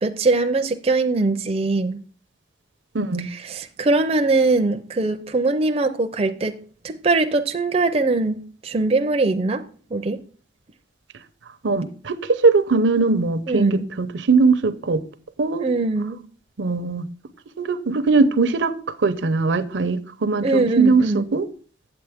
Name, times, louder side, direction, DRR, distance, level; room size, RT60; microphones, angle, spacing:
voice 1, 0.0-2.0 3.3-6.6 6.8-9.6 9.9-10.2 13.5-13.9 15.6-16.2 20.4-21.3, right 3 dB, 30° right, 0.4 m, -21 dB
voice 2, 2.9-3.3 11.6-15.0 15.4-15.7 16.6-17.1 17.6-18.7 19.0-21.5, right 4 dB, 75° right, 0.6 m, -20 dB
8.4 x 7.8 x 3.5 m
head